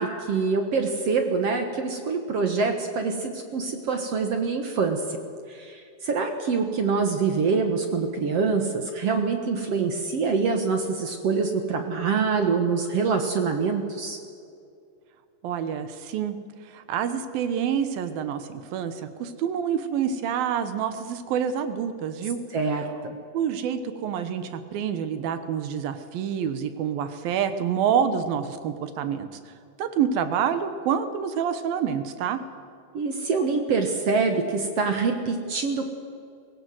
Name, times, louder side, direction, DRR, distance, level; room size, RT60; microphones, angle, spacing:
voice 1, 0.0-5.0 5.5-14.2 22.5-23.2 32.9-35.9, right 4 dB, 55° right, 5 dB, 1.8 m, -25 dB
voice 2, 15.4-16.4 16.7-18.9 19.2-22.4 23.3-29.3 29.8-32.4, right 8 dB, 75° right, 10 dB, 2.9 m, -27 dB
23.0 x 17.5 x 7.8 m, 2.4 s
omnidirectional pair, 4.3 m